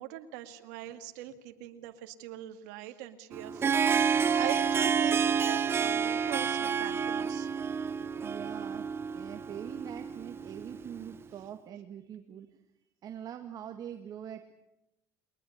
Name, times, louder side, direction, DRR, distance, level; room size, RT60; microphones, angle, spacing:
voice 1, 0.0-7.5, right 13 dB, 85° right, 7 dB, 2.0 m, -42 dB
Harp, 3.3-11.1, right 6 dB, 25° right, 0.8 m, -29 dB
voice 2, 8.2-12.6 13.0-14.5, right 9 dB, 45° right, 6 dB, 1.9 m, -43 dB
22.5 x 20.0 x 9.6 m, 0.87 s
supercardioid pair, 120°, 9 cm